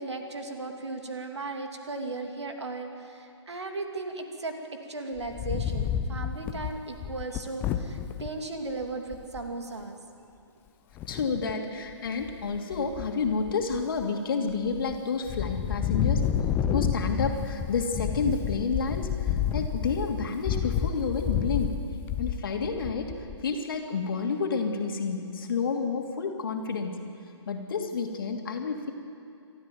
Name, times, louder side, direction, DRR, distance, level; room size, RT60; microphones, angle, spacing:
voice 1, 0.0-4.6 4.9-10.0, right 3 dB, 65° right, 4 dB, 2.9 m, -36 dB
Wind, 5.2-8.3 8.8-8.9 9.1-9.5 10.9-11.5 12.1-12.6 12.9-14.0 14.5-15.0 15.3-23.5, left 9 dB, 15° left, 0.7 m, -30 dB
voice 2, 11.1-16.2 16.7-21.8 22.2-23.1 23.4-27.0 27.5-28.9, left 5 dB, 45° left, 3 dB, 2.7 m, -30 dB
28.5 x 13.0 x 9.3 m, 2.5 s
figure-of-eight pair, 130°, 16 cm